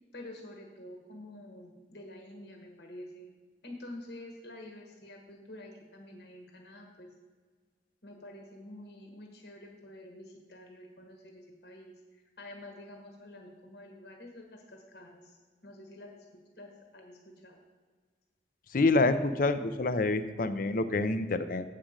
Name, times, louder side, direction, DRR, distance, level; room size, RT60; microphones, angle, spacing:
voice 1, 0.1-3.3 3.6-7.1 8.0-16.2 16.6-17.6, left 1 dB, 65° left, 2 dB, 1.3 m, -48 dB
voice 2, 18.7-21.6, left 3 dB, 50° left, 11 dB, 0.5 m, -27 dB
7.6 x 5.0 x 7.2 m, 1.5 s
head